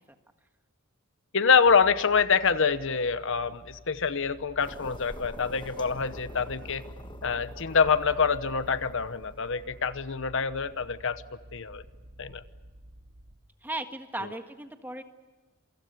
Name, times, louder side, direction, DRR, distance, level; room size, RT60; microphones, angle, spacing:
voice 1, 1.3-6.8 7.2-11.2 11.5-11.8 12.2-12.4 14.2-14.3, left 5 dB, 60° left, 13 dB, 1.0 m, -26 dB
sound 1, 1.6-13.4, right 1 dB, 65° right, 2.3 m, -49 dB
sound 2, 4.6-9.9, left 1 dB, 20° left, 1.5 m, -46 dB
voice 2, 13.6-15.0, right 1 dB, 10° right, 6 dB, 1.6 m, -36 dB
28.0 x 25.0 x 6.9 m, 1.3 s
head